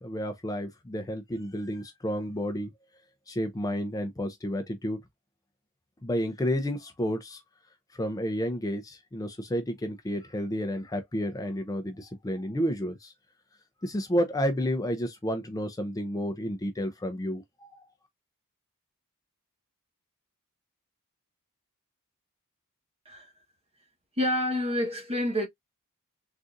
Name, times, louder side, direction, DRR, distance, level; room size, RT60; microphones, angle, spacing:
voice 1, 0.0-2.7 3.3-5.0 6.0-7.4 7.9-13.1 13.8-17.8, equal, 15° left, 0.5 m, -31 dB
voice 2, 24.2-25.5, left 1 dB, 25° right, 1.2 m, -28 dB
3.8 x 2.4 x 2.5 m
head